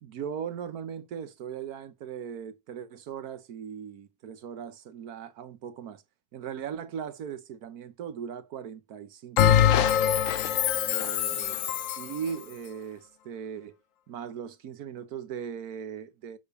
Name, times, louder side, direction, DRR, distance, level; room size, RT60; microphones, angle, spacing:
voice 1, 0.0-6.0 6.3-10.0 10.8-13.8 14.1-16.4, right 8 dB, 60° right, 1.3 m, -39 dB
Bell, 9.4-12.2, left 10 dB, 65° left, 0.8 m, -23 dB
6.8 x 6.7 x 6.8 m
omnidirectional pair, 2.0 m